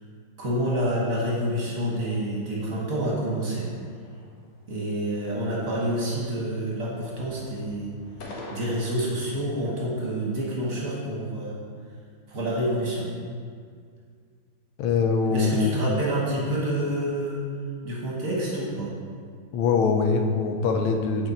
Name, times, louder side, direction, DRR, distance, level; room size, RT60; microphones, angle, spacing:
voice 1, 0.4-3.7 4.7-7.9 8.5-11.6 12.3-13.1 15.3-17.4 17.8-18.9, right 1 dB, 50° right, -5 dB, 1.3 m, -28 dB
sound 1, 3.5-4.6 5.0-5.5 5.7-6.7 7.0-9.5, left 1 dB, 65° left, 1.5 m, -46 dB
voice 2, 14.8-15.8 19.5-21.3, left 5 dB, 85° left, 4 dB, 1.4 m, -23 dB
6.6 x 4.3 x 4.0 m, 2.1 s
omnidirectional pair, 2.2 m